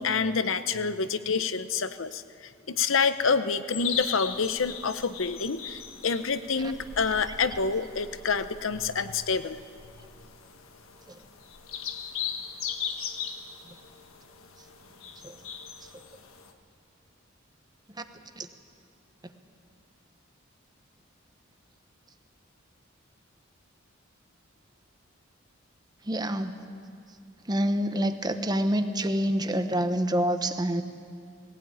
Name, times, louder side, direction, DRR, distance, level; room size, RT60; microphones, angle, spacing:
voice 1, 0.0-9.6, left 5 dB, 70° left, 12 dB, 0.8 m, -28 dB
sound 1, 3.7-16.5, left 7 dB, 90° left, 1.4 m, -39 dB
voice 2, 26.1-26.6 27.5-30.8, equal, 20° right, 8 dB, 1.0 m, -27 dB
19.5 x 16.0 x 9.1 m, 2.3 s
head